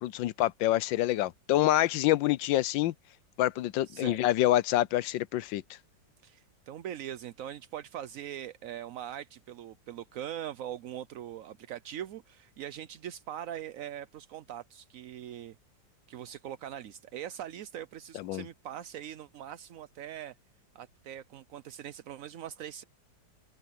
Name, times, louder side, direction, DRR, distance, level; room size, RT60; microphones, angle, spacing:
voice 1, 0.0-2.9 3.4-5.6 18.1-18.4, left 14 dB, 80° left, 1.3 m, -27 dB
voice 2, 3.9-4.2 6.2-15.6 16.1-20.3 20.7-22.8, right 11 dB, 65° right, 0.8 m, -41 dB
open air
omnidirectional pair, 2.1 m